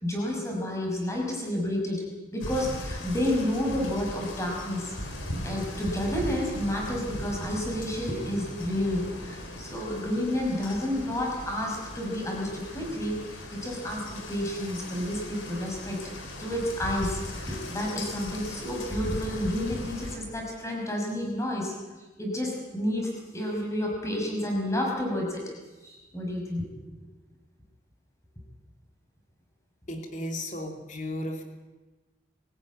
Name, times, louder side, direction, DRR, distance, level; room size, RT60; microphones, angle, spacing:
voice 1, 0.0-2.0 2.3-4.9 5.4-13.2 13.5-16.0 16.4-21.7 22.2-25.4 25.8-26.7, left 1 dB, 15° left, 0 dB, 5.8 m, -30 dB
sound 1, 2.4-20.2, left 1 dB, 85° left, 4.4 m, -38 dB
voice 2, 29.9-31.4, left 1 dB, 40° left, 4 dB, 3.0 m, -34 dB
23.0 x 15.0 x 9.6 m, 1.2 s
head